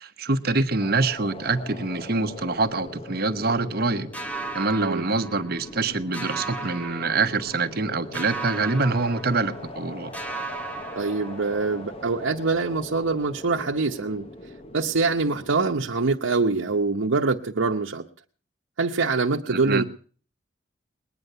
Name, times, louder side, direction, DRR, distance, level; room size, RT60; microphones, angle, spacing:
voice 1, 0.0-4.1 4.5-10.1 19.5-19.8, right 3 dB, 50° right, 9 dB, 1.0 m, -25 dB
sound 1, 0.8-16.1, left 1 dB, 30° left, 0.9 m, -41 dB
sound 2, 4.1-5.8 6.1-7.8 8.1-9.9 10.1-11.8, right 3 dB, 5° left, 1.0 m, -36 dB
voice 2, 11.0-14.3 14.7-18.1 18.8-19.8, right 3 dB, 85° right, 0 dB, 0.9 m, -24 dB
20.5 x 9.7 x 6.7 m, 0.43 s
head